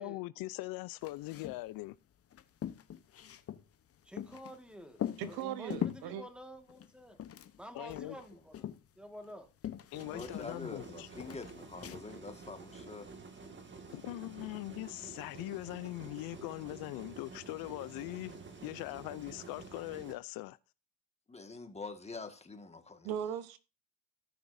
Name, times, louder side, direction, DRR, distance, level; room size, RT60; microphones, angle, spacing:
voice 1, 0.0-1.9 7.7-8.2 9.9-11.1 13.9-18.3 18.6-20.6, left 19 dB, 65° left, 0.6 m, -41 dB
sound 1, 1.0-1.7 1.9-2.0 2.3-4.6 5.0-6.1 6.7-7.6 7.9-9.4 9.6-10.9 11.2-12.0, left 10 dB, 40° left, 0.9 m, -41 dB
voice 2, 4.0-7.2 7.6-8.7 9.0-9.5, equal, 5° right, 1.8 m, -50 dB
voice 3, 5.2-6.2 23.0-23.6, right 9 dB, 70° right, 1.1 m, -38 dB
sound 2, 9.9-20.1, right 4 dB, 30° right, 1.9 m, -50 dB
voice 4, 10.1-13.1 21.3-23.1, left 3 dB, 15° left, 1.8 m, -45 dB
17.0 x 6.0 x 2.7 m
supercardioid pair, 90°, 38 cm